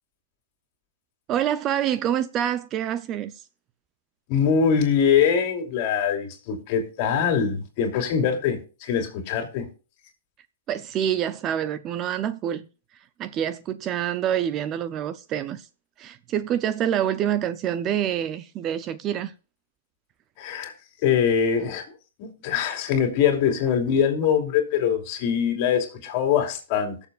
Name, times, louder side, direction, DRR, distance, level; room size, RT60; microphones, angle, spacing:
voice 1, 1.3-3.3 10.7-12.7 13.2-15.7 16.0-19.3, right 10 dB, 25° right, 0.5 m, -26 dB
voice 2, 4.3-9.7 20.4-20.7 21.0-21.8 22.2-27.0, left 7 dB, 40° left, 2.9 m, -23 dB
19.5 x 7.1 x 2.4 m
hypercardioid pair, 150°, 0 cm